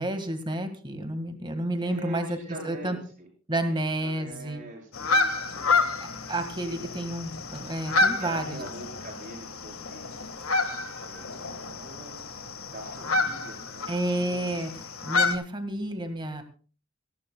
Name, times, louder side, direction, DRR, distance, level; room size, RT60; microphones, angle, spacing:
voice 1, 0.0-2.4 2.6-3.0 3.5-4.6 6.3-8.6 13.9-16.4, right 1 dB, 20° right, 7 dB, 1.8 m, -30 dB
voice 2, 1.9-3.3 3.7-6.0 6.7-6.8 8.0-10.3 10.6-10.8 11.0-12.3 12.7-14.6, right 1 dB, 40° right, 0 dB, 7.0 m, -44 dB
sound 1, 4.9-15.4, left 3 dB, 90° left, 1.7 m, -29 dB
26.5 x 12.0 x 2.3 m, 0.39 s
head